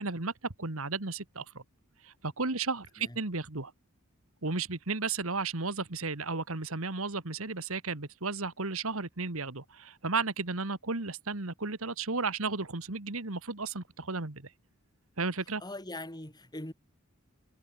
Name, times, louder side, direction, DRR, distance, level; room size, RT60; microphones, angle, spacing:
voice 1, 0.0-1.6 2.0-3.7 4.4-14.5 15.2-15.6, right 4 dB, 70° right, 2.0 m, -34 dB
voice 2, 15.6-16.7, left 1 dB, 20° left, 4.2 m, -41 dB
head